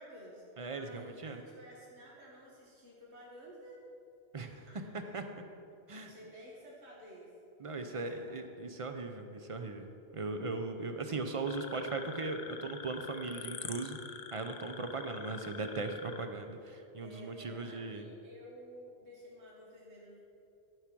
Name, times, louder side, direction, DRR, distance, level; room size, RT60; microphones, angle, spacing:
voice 1, 0.0-3.8 4.7-5.2 5.9-7.3 7.8-8.4 17.0-20.2, equal, 75° right, -4 dB, 1.8 m, -53 dB
voice 2, 0.6-1.4 4.3-4.6 4.9-5.2 5.9-6.1 7.6-9.9 10.1-14.0 14.3-18.0, right 3 dB, 40° right, 6 dB, 0.5 m, -38 dB
sound 1, 11.5-16.3, left 7 dB, 65° left, 0.8 m, -46 dB
12.0 x 4.8 x 5.9 m, 2.6 s
omnidirectional pair, 1.2 m